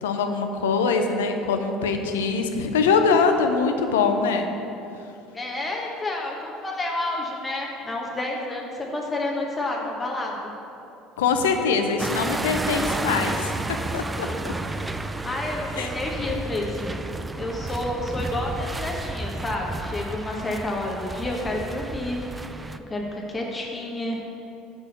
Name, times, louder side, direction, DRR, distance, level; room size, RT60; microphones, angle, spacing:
voice 1, 0.0-4.5 11.2-13.5 13.9-14.5 15.7-15.9, left 5 dB, 85° left, 5 dB, 0.6 m, -23 dB
voice 2, 5.3-10.5 14.3-14.4 15.2-16.9 17.4-22.2 22.9-24.2, left 2 dB, 25° left, -1 dB, 1.1 m, -30 dB
sound 1, 12.0-22.8, right 2 dB, 15° right, 0.4 m, -31 dB
6.1 x 6.0 x 6.5 m, 2.8 s
hypercardioid pair, 75°, 0 cm